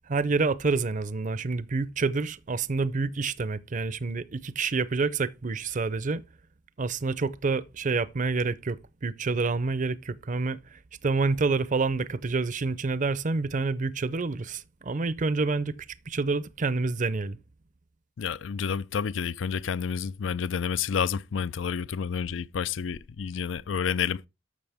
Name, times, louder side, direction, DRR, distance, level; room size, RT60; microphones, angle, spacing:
voice 1, 0.1-6.2 6.8-10.6 11.0-15.7 16.1-17.4, right 4 dB, 45° right, 0.6 m, -28 dB
voice 2, 18.2-24.2, left 7 dB, 85° left, 0.4 m, -29 dB
12.5 x 6.2 x 3.5 m
head